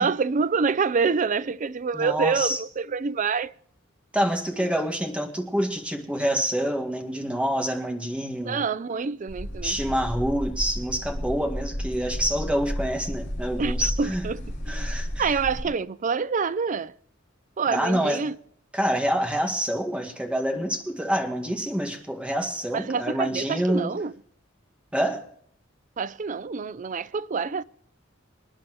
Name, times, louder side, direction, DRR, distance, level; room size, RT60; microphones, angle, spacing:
voice 1, 0.0-3.5 4.5-4.7 8.4-9.8 13.6-14.9 15.2-16.9 17.6-18.4 22.7-24.1 26.0-27.6, right 5 dB, 40° right, 0.4 m, -27 dB
voice 2, 1.9-2.6 4.1-8.6 9.6-14.2 14.7-15.3 17.7-18.3 18.7-23.9 24.9-25.2, equal, 5° right, 1.9 m, -27 dB
sound 1, 9.3-15.6, equal, 40° left, 5.5 m, -32 dB
26.5 x 10.5 x 3.1 m
head